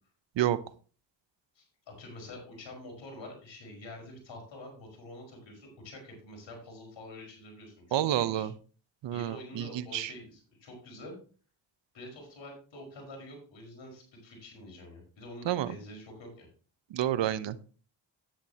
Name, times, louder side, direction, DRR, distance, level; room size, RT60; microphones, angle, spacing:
voice 1, 1.6-8.5 9.1-11.2 11.9-16.5, left 1 dB, 75° left, 1 dB, 5.2 m, -47 dB
voice 2, 7.9-8.5 9.0-10.1 15.5-15.7 16.9-17.7, right 12 dB, 75° right, 15 dB, 0.9 m, -29 dB
10.5 x 9.8 x 2.9 m, 0.38 s
supercardioid pair, 55°, 45 cm